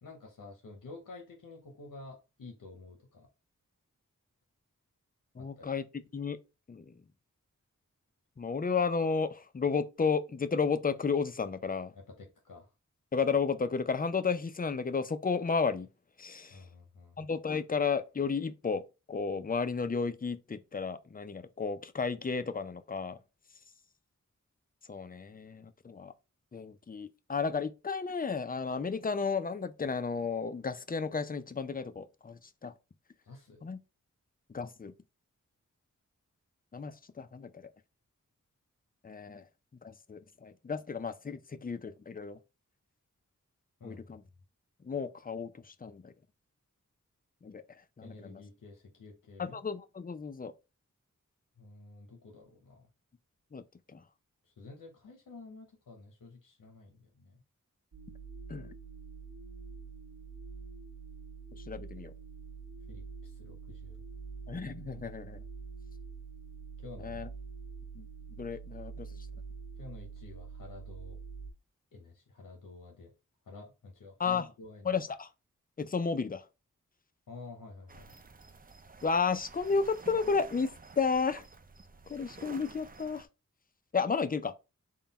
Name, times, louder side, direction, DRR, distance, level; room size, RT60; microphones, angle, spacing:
voice 1, 0.0-3.3 5.4-5.7 11.9-12.7 16.5-17.2 33.2-33.7 43.8-44.0 48.0-49.6 51.6-52.9 54.5-57.4 62.9-64.0 66.8-67.3 69.8-71.2 71.9-73.1 73.5-74.9 77.3-78.1, left 3 dB, 85° left, 0.8 m, -50 dB
voice 2, 5.3-5.9 6.1-6.4 6.7-7.0 8.4-11.9 13.1-15.9 16.2-16.7 17.2-18.8 19.1-23.2 24.9-26.1 26.5-32.7 33.6-33.8 34.5-34.9 36.7-37.7 39.0-39.5 39.8-42.4 43.8-44.2 44.8-46.1 47.4-48.4 49.4-50.5 53.5-53.6 53.9-54.0 58.5-58.7 61.6-62.1 64.5-65.4 67.0-67.3 68.0-68.1 68.4-69.2 74.2-74.5 74.8-75.3 75.8-76.5 79.0-81.4 82.1-83.3 83.9-84.5, left 5 dB, 25° left, 0.5 m, -33 dB
sound 1, 57.9-71.5, right 5 dB, 60° right, 1.0 m, -46 dB
sound 2, 77.9-83.3, right 4 dB, 25° right, 0.5 m, -51 dB
3.7 x 2.2 x 4.0 m
cardioid pair, 40°, 32 cm